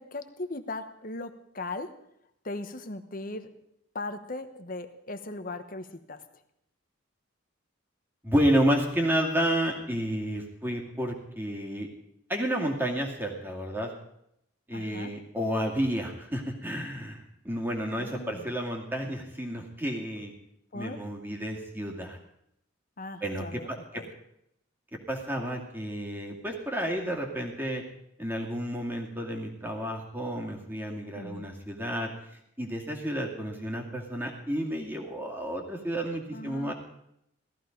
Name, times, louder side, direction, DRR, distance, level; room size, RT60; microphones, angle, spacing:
voice 1, 0.0-1.9 2.4-3.5 3.9-6.2 14.7-15.1 18.0-18.5 20.7-21.0 23.0-23.7 23.9-24.1 31.1-31.5 36.3-36.7, left 2 dB, 45° left, 9 dB, 1.1 m, -38 dB
voice 2, 8.2-11.9 12.3-13.9 14.7-20.3 20.7-22.2 23.2-24.0 24.9-27.8 28.2-32.1 32.6-36.7, equal, 10° right, 0 dB, 2.4 m, -31 dB
17.0 x 14.5 x 5.3 m, 0.77 s
head